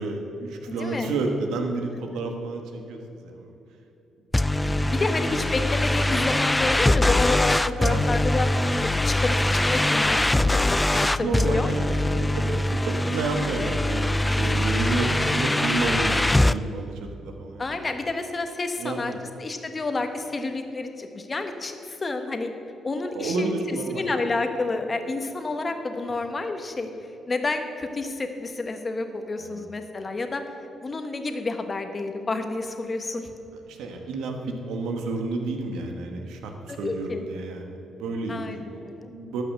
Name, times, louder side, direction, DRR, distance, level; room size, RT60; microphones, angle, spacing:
voice 1, 0.0-3.6 4.6-5.0 5.3-5.4 7.8-8.0 10.9-17.7 18.8-19.2 23.1-24.0 29.4-29.6 33.7-39.4, right 3 dB, 85° right, 4 dB, 1.3 m, -31 dB
voice 2, 0.7-1.1 4.9-8.5 8.8-10.2 10.5-11.7 15.2-15.5 17.6-19.1 19.4-22.5 22.8-26.9 27.3-30.4 30.8-33.3 36.7-37.3 38.3-39.1, left 3 dB, 35° left, 6 dB, 1.2 m, -29 dB
sound 1, 4.3-16.6, left 1 dB, 15° left, 0.3 m, -23 dB
12.0 x 5.7 x 7.5 m, 2.8 s
supercardioid pair, 60°, 0 cm